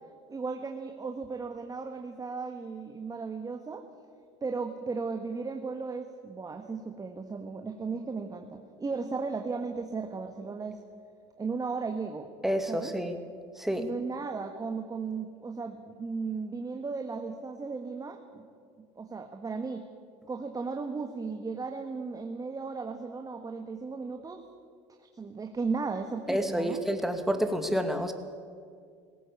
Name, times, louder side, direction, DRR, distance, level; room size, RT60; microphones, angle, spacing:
voice 1, 0.3-3.8 4.4-10.8 11.4-12.3 12.7-12.9 13.8-18.5 18.9-19.8 20.3-24.4 25.0-26.8, right 4 dB, 25° right, 5 dB, 1.6 m, -35 dB
voice 2, 12.4-13.2 13.6-13.9 26.3-28.1, equal, ahead, 7 dB, 2.1 m, -29 dB
19.0 x 16.5 x 8.4 m, 2.2 s
hypercardioid pair, 80°, 16 cm